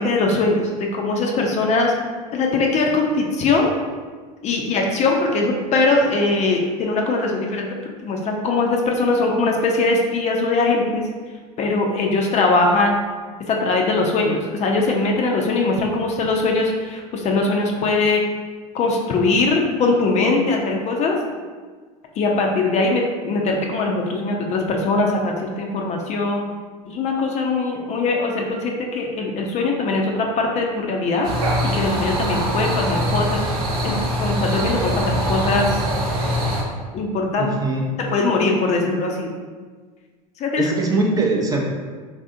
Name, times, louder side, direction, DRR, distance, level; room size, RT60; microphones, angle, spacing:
voice 1, 0.0-2.0 2.3-3.7 4.4-7.8 8.0-11.0 11.6-12.9 13.5-18.2 18.7-21.2 22.2-26.4 26.9-31.3 31.6-33.4 33.8-35.8 36.9-37.5 38.0-39.3 40.4-40.7, left 3 dB, 35° left, 1 dB, 0.5 m, -21 dB
sound 1, 31.2-36.6, equal, 75° right, 0.7 m, -23 dB
voice 2, 37.4-37.9 40.6-41.6, right 2 dB, 20° right, -1 dB, 0.5 m, -21 dB
3.3 x 2.6 x 2.5 m, 1.5 s
hypercardioid pair, 80°, 20 cm